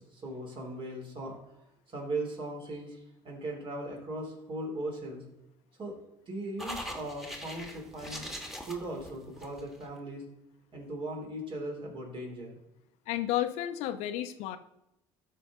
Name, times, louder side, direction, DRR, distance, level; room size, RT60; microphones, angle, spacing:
voice 1, 0.0-1.4 1.9-5.2 5.8-6.0 6.3-8.3 8.7-10.2 10.7-12.6, right 1 dB, 50° right, 0 dB, 3.0 m, -38 dB
sound 1, 6.6-9.9, equal, ahead, 1.5 m, -41 dB
voice 2, 13.1-14.6, left 13 dB, 80° left, 10 dB, 0.6 m, -32 dB
12.5 x 4.6 x 3.7 m, 0.85 s
supercardioid pair, 75°, 11 cm